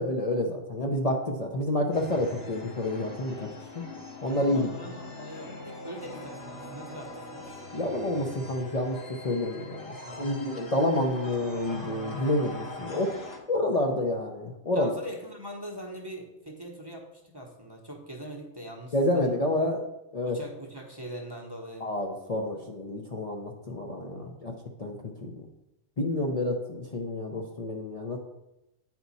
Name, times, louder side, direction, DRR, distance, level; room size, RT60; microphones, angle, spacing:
voice 1, 0.0-3.5 3.7-3.8 4.2-4.7 7.7-9.0 9.2-13.1 13.5-14.9 18.9-19.8 20.1-20.4 21.8-24.5 24.8-25.4 26.0-28.2, left 1 dB, 40° left, 0 dB, 0.7 m, -29 dB
sound 1, 1.9-13.4, left 2 dB, 55° left, 1.3 m, -42 dB
voice 2, 4.5-7.5 10.0-10.5 14.7-17.1 17.3-19.3 20.2-21.9 24.1-24.6, equal, 25° right, 0 dB, 0.8 m, -42 dB
9.2 x 4.4 x 4.1 m, 0.89 s
omnidirectional pair, 1.2 m